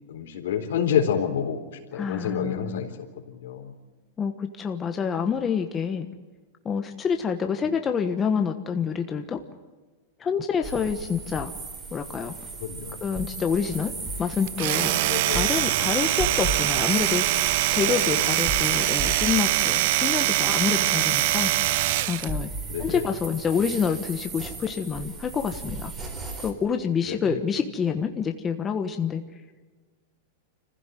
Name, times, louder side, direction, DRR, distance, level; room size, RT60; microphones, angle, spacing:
voice 1, 0.1-2.9 3.3-3.7 12.6-13.0 15.0-15.5 17.9-18.3 22.7-23.0 27.1-27.4, left 8 dB, 80° left, 4 dB, 3.9 m, -28 dB
voice 2, 2.0-2.8 4.2-6.1 6.6-9.4 10.2-11.5 11.9-12.3 13.0-15.0 15.3-17.2 17.7-21.5 22.1-22.5 22.8-25.9 26.4-29.2, left 6 dB, 20° left, 6 dB, 1.3 m, -27 dB
sound 1, 10.6-26.5, right 3 dB, 25° right, 4.3 m, -36 dB
Domestic sounds home sounds, 14.5-22.3, right 17 dB, 60° right, 0.6 m, -23 dB
25.5 x 15.5 x 9.2 m, 1.3 s
supercardioid pair, 135°, 0 cm